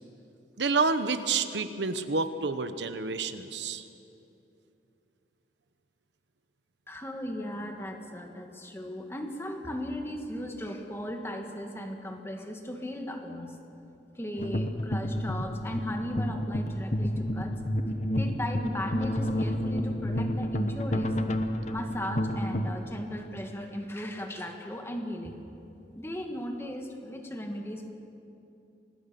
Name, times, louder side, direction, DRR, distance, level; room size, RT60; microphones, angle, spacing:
voice 1, 0.6-3.8, right 4 dB, 90° right, 10 dB, 1.1 m, -29 dB
voice 2, 6.9-13.6 14.2-17.6 18.1-21.1 21.7-25.4 25.9-27.9, equal, 15° left, 3 dB, 1.9 m, -36 dB
sound 1, 14.4-22.8, left 1 dB, 40° left, 1.2 m, -30 dB
25.5 x 19.0 x 6.9 m, 2.8 s
head